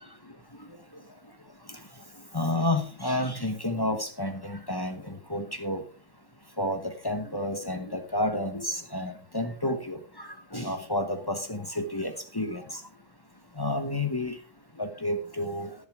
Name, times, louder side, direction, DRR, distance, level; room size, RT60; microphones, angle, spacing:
voice 1, 2.3-5.8 6.6-12.8 13.6-14.4 14.8-15.7, left 1 dB, 20° left, 7 dB, 0.6 m, -30 dB
11.0 x 10.5 x 3.6 m, 0.37 s
omnidirectional pair, 2.2 m